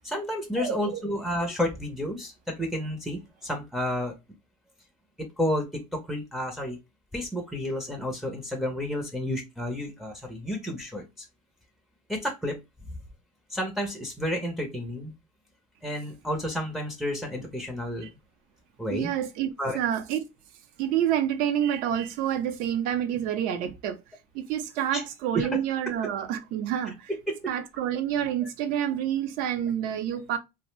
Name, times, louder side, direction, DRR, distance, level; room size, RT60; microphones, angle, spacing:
voice 1, 0.0-4.1 5.4-6.8 7.1-11.3 12.1-12.6 13.5-15.1 15.8-18.1 18.8-19.1 19.6-19.8 24.9-25.0 25.3-25.5 27.3-27.4 28.4-28.5, left 1 dB, ahead, 0.5 m, -31 dB
voice 2, 0.6-1.0 18.0-18.1 18.9-19.5 19.7-20.2 20.8-24.0 24.3-27.1 27.5-30.4, right 10 dB, 60° right, 0.6 m, -28 dB
2.6 x 2.0 x 3.1 m
supercardioid pair, 135°, 17 cm